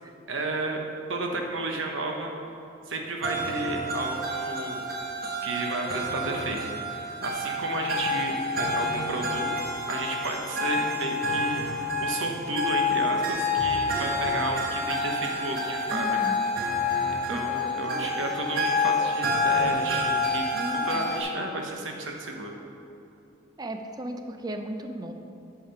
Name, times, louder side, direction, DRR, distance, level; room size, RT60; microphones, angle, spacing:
voice 1, 0.3-0.8 1.1-2.3 2.9-4.8 5.4-9.5 9.9-16.2 17.3-20.4 20.9-22.6, right 2 dB, 85° right, 2 dB, 1.0 m, -32 dB
sound 1, 3.2-21.2, left 2 dB, 50° right, 1.1 m, -28 dB
voice 2, 15.9-16.4 17.3-18.1 20.5-21.1 23.6-25.1, right 1 dB, 20° right, 6 dB, 0.5 m, -36 dB
8.8 x 4.9 x 5.7 m, 2.7 s
head